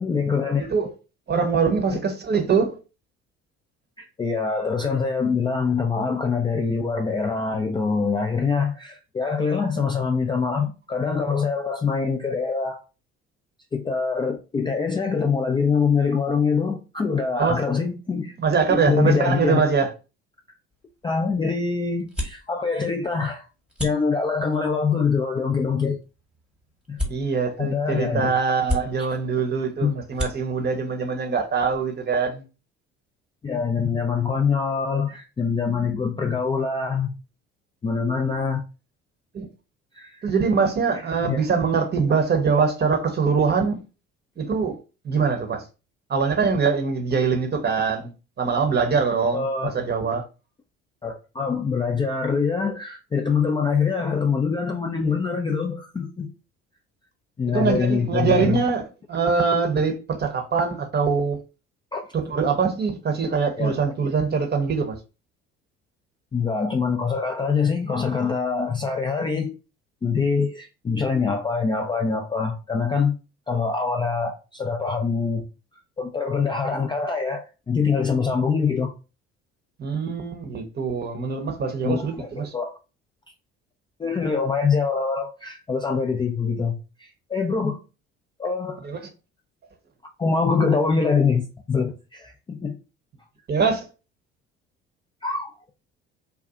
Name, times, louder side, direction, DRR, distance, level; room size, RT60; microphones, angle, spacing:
voice 1, 0.0-0.7 1.9-2.0 4.0-12.8 13.7-18.3 18.7-19.6 21.0-23.5 23.8-26.0 26.9-27.0 27.6-28.3 29.8-29.9 33.4-37.1 37.8-38.6 39.9-40.3 41.3-41.4 49.3-49.7 51.0-56.3 57.4-58.6 61.9-62.0 63.6-63.7 66.3-69.5 70.0-73.2 73.5-75.4 76.0-78.9 81.8-82.7 84.0-87.8 88.4-88.9 90.2-92.8 95.2-95.7, left 5 dB, 15° left, 0.3 m, -24 dB
voice 2, 0.6-0.9 1.3-2.8 17.3-17.6 18.4-19.9 27.0-32.4 39.3-39.5 40.2-43.8 44.4-44.8 45.0-45.6 46.1-48.1 48.4-50.2 57.5-61.4 62.1-65.0 79.8-82.5 88.8-89.0 93.5-93.9, right 5 dB, 30° right, 0.7 m, -23 dB
sound 1, 20.7-32.3, equal, 5° right, 1.0 m, -37 dB
2.6 x 2.2 x 2.3 m
hypercardioid pair, 60°, 33 cm